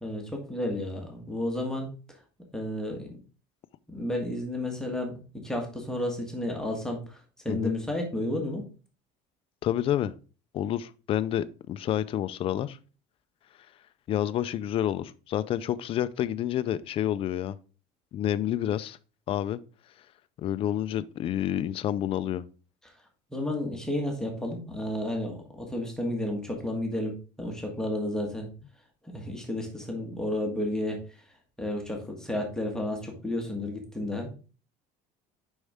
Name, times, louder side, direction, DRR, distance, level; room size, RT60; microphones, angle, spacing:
voice 1, 0.0-2.2 2.5-3.2 3.9-8.6 23.3-28.5 29.1-31.2 31.6-34.3, left 1 dB, 5° left, 1.6 m, -32 dB
voice 2, 9.6-10.1 10.5-12.8 14.1-17.6 18.1-19.0 19.3-19.6 20.4-22.5, left 11 dB, 40° left, 0.5 m, -29 dB
6.6 x 5.4 x 3.6 m
cardioid pair, 140°, 14 cm